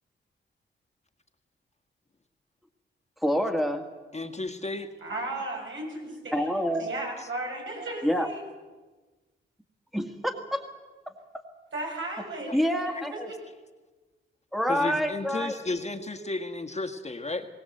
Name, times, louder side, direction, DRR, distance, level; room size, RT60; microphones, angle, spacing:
voice 1, 3.2-3.8 6.3-6.9 8.0-8.3 9.9-10.6 12.5-13.3 14.5-15.6, equal, ahead, 5 dB, 1.9 m, -27 dB
voice 2, 4.1-4.9 7.2-7.3 12.5-12.6 12.9-13.0 14.7-17.5, left 2 dB, 30° left, 4 dB, 1.7 m, -33 dB
voice 3, 5.0-6.5 6.8-8.4 11.7-13.4, right 2 dB, 70° right, 0 dB, 7.1 m, -35 dB
20.5 x 18.0 x 8.0 m, 1.3 s
cardioid pair, 70°, 21 cm